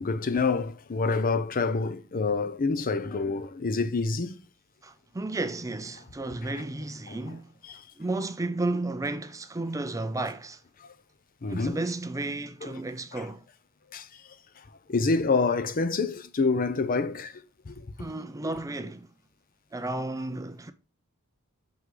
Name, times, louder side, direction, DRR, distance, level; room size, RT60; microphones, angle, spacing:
voice 1, 0.0-4.4 7.1-7.2 7.7-7.8 11.4-11.8 13.1-13.2 13.9-14.0 14.9-17.3 17.7-17.9, left 4 dB, 40° left, 0.6 m, -27 dB
voice 2, 4.8-7.6 8.0-10.6 11.4-13.4 18.0-19.1 19.7-20.7, right 2 dB, 15° right, 0.5 m, -33 dB
6.1 x 5.7 x 3.8 m
head